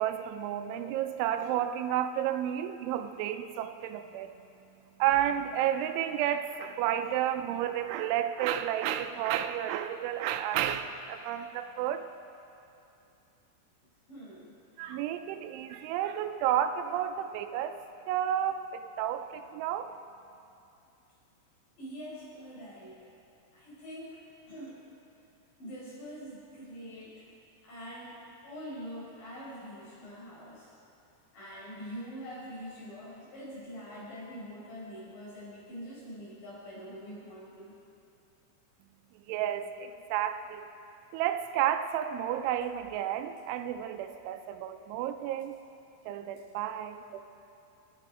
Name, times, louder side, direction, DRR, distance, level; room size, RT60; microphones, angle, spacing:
voice 1, 0.0-4.3 5.0-12.0 14.8-19.9 39.1-40.7 41.1-45.6 46.1-47.2, right 10 dB, 85° right, 9 dB, 3.1 m, -31 dB
voice 2, 14.1-14.5 21.8-23.0 23.5-24.2 24.5-24.8 25.6-27.2 27.6-30.7 31.3-37.7, equal, 45° left, -7 dB, 6.6 m, -44 dB
28.0 x 9.6 x 4.9 m, 2.7 s
omnidirectional pair, 5.4 m